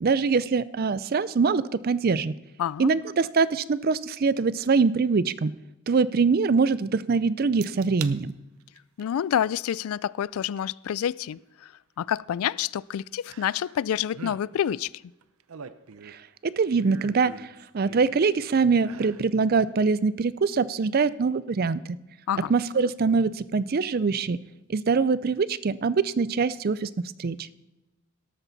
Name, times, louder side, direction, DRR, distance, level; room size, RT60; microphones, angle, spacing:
voice 1, 0.0-2.3 2.8-5.5 5.9-8.3 16.1-17.5 17.7-21.8 22.5-24.4 24.7-26.9 27.2-27.4, right 4 dB, 45° right, 0.4 m, -23 dB
voice 2, 2.6-3.0 9.0-11.4 12.0-14.9 22.3-22.5, left 9 dB, 80° left, 0.3 m, -28 dB
sound 1, 7.6-8.2 8.6-9.0 10.6-10.7 13.3-13.8 14.1-14.4 15.2-16.3 16.8-18.3 18.8-19.3 19.7-19.8, right 7 dB, 85° right, 0.7 m, -43 dB
12.5 x 12.5 x 4.0 m
head